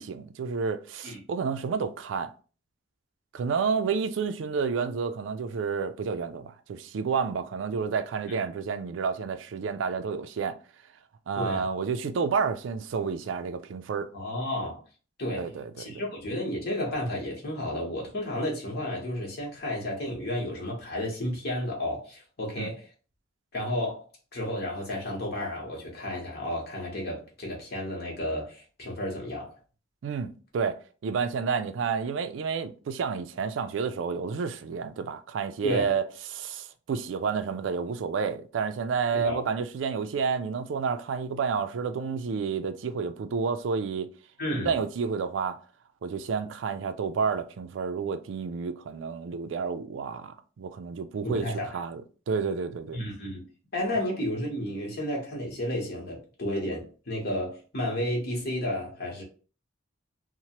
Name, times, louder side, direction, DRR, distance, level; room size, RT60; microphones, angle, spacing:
voice 1, 0.0-2.3 3.3-10.6 11.3-14.1 15.3-16.0 22.6-22.7 30.0-36.0 36.3-44.1 44.6-45.6 46.0-52.0 52.3-53.0, right 5 dB, 80° right, 0.3 m, -30 dB
voice 2, 11.3-11.7 14.1-14.8 15.2-15.4 15.8-22.8 23.5-24.0 24.3-29.5 35.6-35.9 39.1-39.4 44.4-44.7 51.2-51.7 52.9-53.4 53.7-59.2, left 1 dB, 55° left, 0.9 m, -32 dB
2.9 x 2.1 x 2.8 m
head